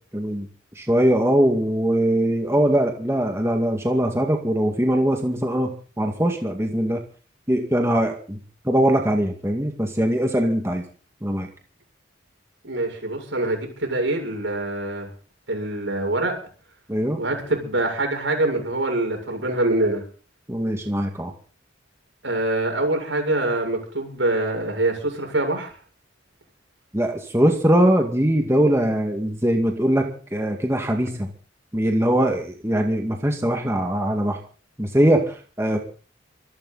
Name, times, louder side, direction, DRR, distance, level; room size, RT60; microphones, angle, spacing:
voice 1, 0.1-0.5 0.8-7.0 7.5-8.4 8.6-10.8 11.2-11.5 16.9-17.2 20.5-21.3 26.9-31.3 31.7-34.4 34.8-35.8, right 1 dB, 15° right, 3 dB, 2.1 m, -21 dB
voice 2, 12.6-15.1 15.5-16.3 17.2-20.0 22.2-25.7, right 2 dB, 80° right, 3 dB, 7.5 m, -24 dB
25.5 x 12.5 x 4.2 m, 0.41 s
head